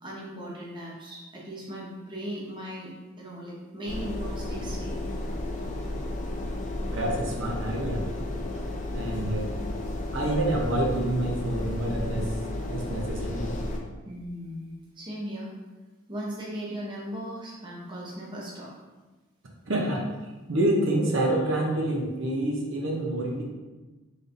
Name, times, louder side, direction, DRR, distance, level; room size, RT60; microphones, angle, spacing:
voice 1, 0.0-5.0 14.0-15.5 16.1-18.7, equal, 20° right, -4 dB, 0.7 m, -38 dB
sound 1, 3.9-13.8, left 1 dB, 35° left, 0.4 m, -33 dB
voice 2, 6.9-8.0 8.9-9.5 10.1-12.3 12.7-13.5 19.7-20.0 20.5-23.4, right 1 dB, 65° right, -1 dB, 0.6 m, -27 dB
4.0 x 3.4 x 2.5 m, 1.2 s
head